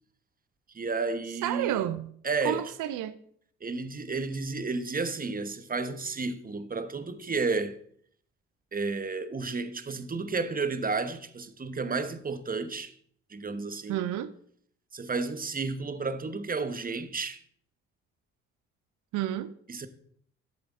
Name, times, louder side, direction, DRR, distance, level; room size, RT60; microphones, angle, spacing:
voice 1, 0.7-1.8 2.2-2.6 3.6-7.8 8.7-12.9 13.3-14.0 14.9-17.4 19.7-19.9, right 4 dB, 25° right, 1.1 m, -32 dB
voice 2, 1.4-2.1 2.4-3.2 13.9-14.3 19.1-19.5, right 12 dB, 70° right, 0.6 m, -30 dB
11.5 x 7.8 x 3.6 m
hypercardioid pair, 55°, 32 cm